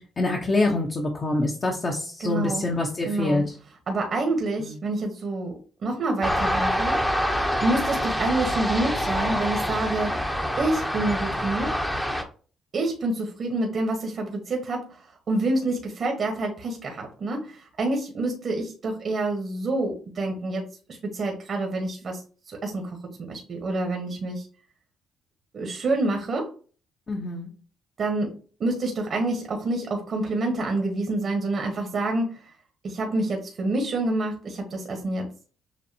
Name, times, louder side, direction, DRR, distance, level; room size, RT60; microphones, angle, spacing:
voice 1, 0.0-3.6 4.6-4.8 27.1-27.5, left 2 dB, 40° left, -1 dB, 1.0 m, -26 dB
voice 2, 2.2-2.6 3.0-3.4 3.9-7.0 7.6-10.2 10.6-11.8 12.7-15.0 15.3-24.5 25.5-26.5 28.0-32.3 32.8-35.3, right 2 dB, 50° right, 2 dB, 1.2 m, -27 dB
sound 1, 6.2-12.2, equal, 5° left, 0.9 m, -26 dB
7.1 x 2.5 x 2.8 m, 0.39 s
cardioid pair, 90°, 0 cm